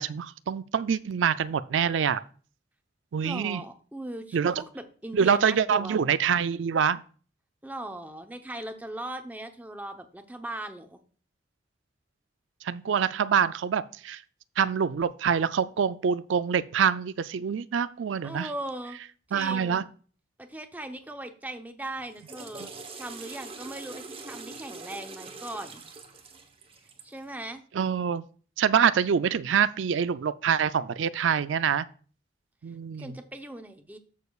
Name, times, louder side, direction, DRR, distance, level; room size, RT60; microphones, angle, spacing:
voice 1, 0.0-2.2 3.1-3.6 4.3-4.6 5.1-7.0 12.6-14.2 14.6-18.5 19.3-19.8 22.6-22.7 27.7-28.2 28.6-31.9 32.6-33.1, right 7 dB, 90° right, 0.4 m, -25 dB
voice 2, 3.2-6.0 7.6-11.0 18.2-19.0 19.3-19.9 20.4-22.7 23.0-25.8 27.0-27.6 33.0-34.0, right 1 dB, 10° right, 0.8 m, -39 dB
Water / Toilet flush, 22.0-27.2, right 3 dB, 30° right, 1.0 m, -43 dB
13.5 x 6.5 x 2.4 m
head